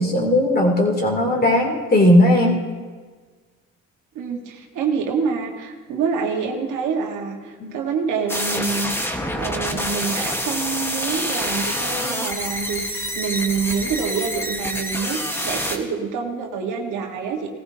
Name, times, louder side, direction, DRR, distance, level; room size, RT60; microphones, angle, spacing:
voice 1, 0.0-2.6 7.6-7.7, left 1 dB, 30° left, 0 dB, 2.8 m, -17 dB
voice 2, 4.1-17.5, right 5 dB, 90° right, 2 dB, 1.6 m, -26 dB
sound 1, 8.3-15.8, equal, 10° left, 1.3 m, -27 dB
18.0 x 14.5 x 2.8 m, 1.5 s
cardioid pair, 90°, 30 cm